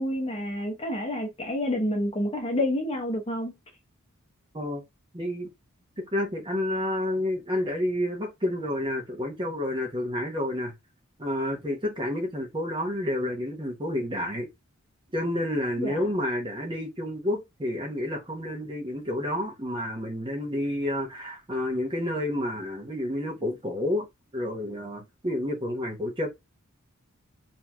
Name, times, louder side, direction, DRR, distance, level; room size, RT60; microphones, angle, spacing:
voice 1, 0.0-3.6 15.8-16.1, left 1 dB, 25° left, 0.8 m, -29 dB
voice 2, 5.1-5.5 6.0-10.7 11.2-14.5 15.1-24.1 24.3-26.3, left 1 dB, 20° right, 0.8 m, -30 dB
3.0 x 2.6 x 2.2 m
head